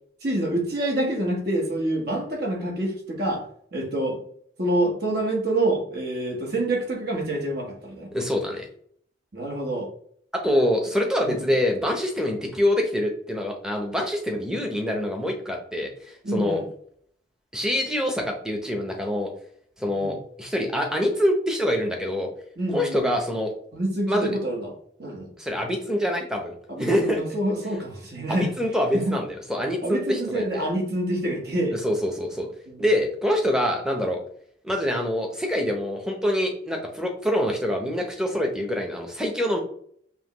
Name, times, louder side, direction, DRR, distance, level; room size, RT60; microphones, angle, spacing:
voice 1, 0.2-3.4 3.7-4.2 4.6-8.1 9.3-9.9 11.2-11.5 16.2-16.7 20.0-20.2 22.6-23.1 23.7-24.7 25.0-25.3 26.7-28.5 28.9-29.2 29.8-31.8 32.7-32.9, right 1 dB, 55° right, -1 dB, 1.4 m, -27 dB
voice 2, 8.1-8.7 10.4-16.6 17.5-19.3 19.8-22.3 22.7-23.5 24.1-24.3 25.4-27.2 28.3-30.6 31.7-32.5 32.8-34.2 34.6-39.6, equal, 5° right, 2 dB, 0.8 m, -25 dB
5.5 x 2.3 x 3.0 m, 0.62 s
head